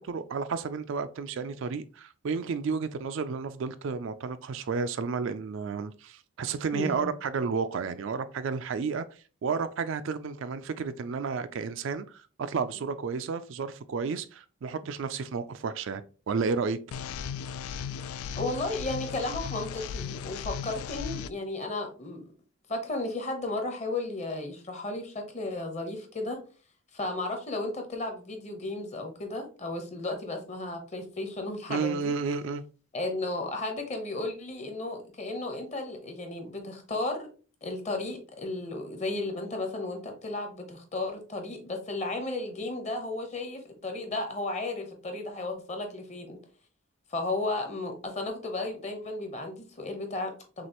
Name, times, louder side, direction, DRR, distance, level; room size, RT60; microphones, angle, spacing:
voice 1, 0.0-9.1 9.4-16.0 16.3-16.8 31.7-32.6, right 5 dB, 60° right, 0.3 m, -32 dB
voice 2, 6.7-7.1 18.4-22.2 22.7-26.4 26.9-32.1 32.9-37.3 37.6-46.4 47.1-50.7, left 2 dB, 30° left, 0.9 m, -34 dB
sound 1, 16.9-21.3, left 7 dB, 85° left, 0.3 m, -36 dB
6.1 x 2.5 x 2.9 m
head